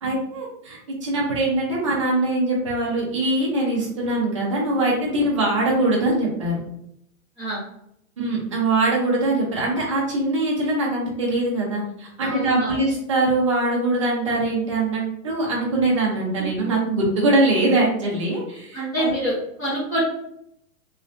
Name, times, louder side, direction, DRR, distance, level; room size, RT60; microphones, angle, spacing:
voice 1, 0.0-6.5 8.2-19.1, right 2 dB, 25° right, -4 dB, 0.5 m, -22 dB
voice 2, 12.2-12.8 16.4-16.5 18.7-20.0, right 1 dB, 10° left, -10 dB, 0.8 m, -26 dB
3.1 x 3.0 x 2.5 m, 0.75 s
hypercardioid pair, 180°, 42 cm